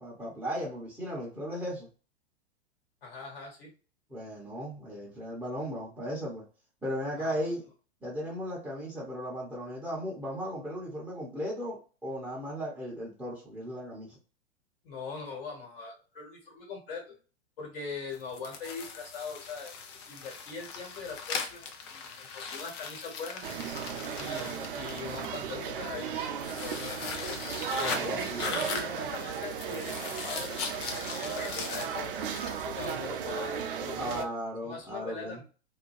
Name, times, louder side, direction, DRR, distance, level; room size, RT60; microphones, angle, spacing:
voice 1, 0.0-1.9 4.1-6.4 6.8-7.6 8.0-14.2 27.9-28.4 33.9-35.4, equal, 5° right, -6 dB, 0.8 m, -36 dB
voice 2, 3.0-3.7 7.2-7.4 14.8-17.1 17.6-19.7 20.1-23.4 24.2-27.4 27.8-32.2 32.6-34.3 34.6-35.4, left 4 dB, 55° left, 0 dB, 1.5 m, -42 dB
sound 1, 18.1-25.4 26.4-32.9, left 5 dB, 25° left, 0.3 m, -39 dB
sound 2, 23.4-34.2, right 7 dB, 50° right, 0.5 m, -35 dB
2.7 x 2.2 x 3.0 m, 0.36 s
figure-of-eight pair, 105°, 33 cm